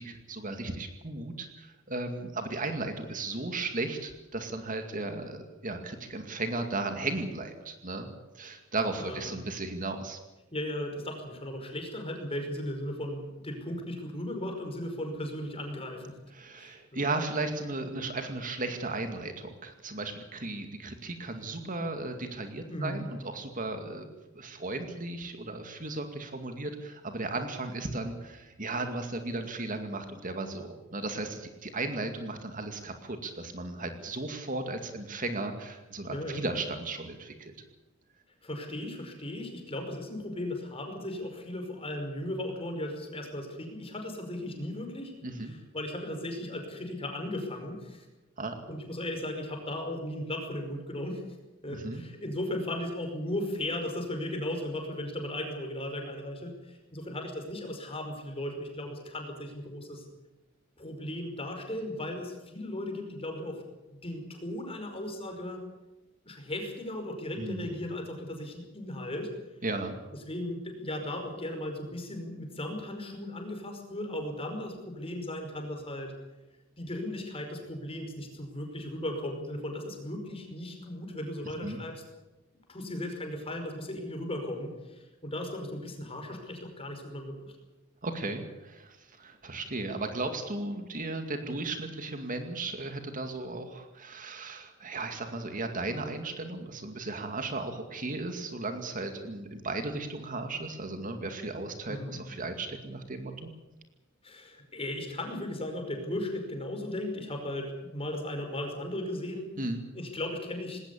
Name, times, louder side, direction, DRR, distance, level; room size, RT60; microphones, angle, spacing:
voice 1, 0.0-8.1 8.3-10.2 16.3-24.1 24.3-37.5 45.2-45.5 48.4-48.5 51.7-52.0 67.4-67.7 69.6-69.9 81.6-81.8 88.0-103.5 109.6-109.9, right 2 dB, 45° right, 6 dB, 2.3 m, -35 dB
voice 2, 9.0-9.3 10.5-16.1 16.6-17.1 22.7-23.0 36.1-36.4 38.4-45.1 45.4-48.1 48.7-51.2 51.6-60.0 60.8-63.6 63.9-65.6 66.3-69.3 70.2-76.1 76.8-82.0 82.7-87.3 101.9-102.2 104.2-109.5 109.9-110.8, left 1 dB, 30° left, 4 dB, 5.3 m, -36 dB
20.0 x 18.0 x 8.5 m, 1.0 s
head